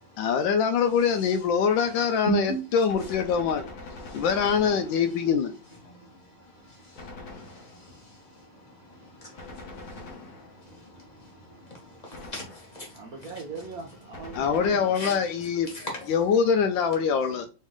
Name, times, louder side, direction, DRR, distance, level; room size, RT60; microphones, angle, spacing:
voice 1, 0.2-3.7 4.1-5.5 14.4-15.7 16.1-17.5, left 6 dB, 75° left, 1.2 m, -24 dB
voice 2, 1.9-2.6 4.0-4.2 5.8-13.1 14.9-15.1 15.6-16.1 17.3-17.4, right 3 dB, 25° left, 1.2 m, -38 dB
Gunshot gunfire, 2.9-5.4 6.9-8.0 9.4-10.8 12.1-12.9 14.1-15.3, left 2 dB, 55° left, 1.4 m, -43 dB
voice 3, 12.9-15.2, right 4 dB, 60° right, 1.0 m, -41 dB
4.1 x 3.2 x 3.6 m
omnidirectional pair, 2.2 m